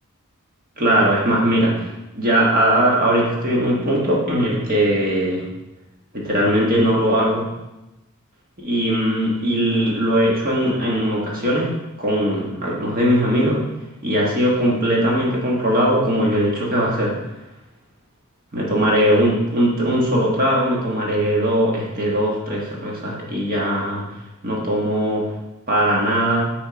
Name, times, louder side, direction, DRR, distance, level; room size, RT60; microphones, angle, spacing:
voice 1, 0.8-5.5 6.1-7.4 8.6-11.7 12.0-13.6 14.0-17.1 18.5-24.0 24.4-25.2 25.7-26.5, equal, 40° right, -3 dB, 1.5 m, -20 dB
6.3 x 3.6 x 5.1 m, 0.97 s
head